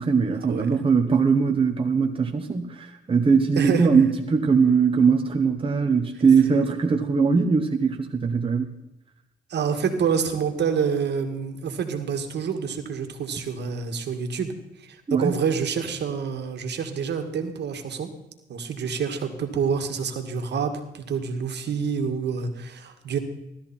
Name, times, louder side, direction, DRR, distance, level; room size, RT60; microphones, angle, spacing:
voice 1, 0.0-8.7 15.1-15.4, right 5 dB, 25° right, 3 dB, 1.1 m, -21 dB
voice 2, 3.6-3.9 9.5-14.5 14.8-18.1 18.5-23.2, right 6 dB, 60° right, 5 dB, 2.0 m, -27 dB
16.5 x 12.5 x 4.4 m, 0.93 s
cardioid pair, 90°, 20 cm